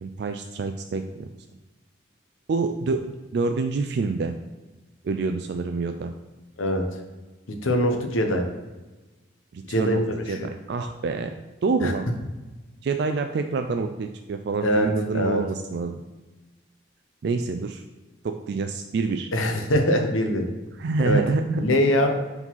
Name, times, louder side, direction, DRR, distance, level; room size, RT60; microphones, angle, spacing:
voice 1, 0.0-1.3 2.5-4.4 5.0-6.1 9.5-10.0 10.3-10.4 10.7-11.3 11.6-12.1 12.8-16.0 17.2-17.8 18.2-19.3 20.8-21.6, right 4 dB, 55° right, 6 dB, 0.3 m, -27 dB
voice 2, 7.6-8.4 9.7-10.5 11.8-11.9 14.6-15.4 19.3-20.4 21.0-21.2 21.6-22.2, equal, 80° left, 4 dB, 0.9 m, -23 dB
4.8 x 4.0 x 5.4 m, 1.2 s
head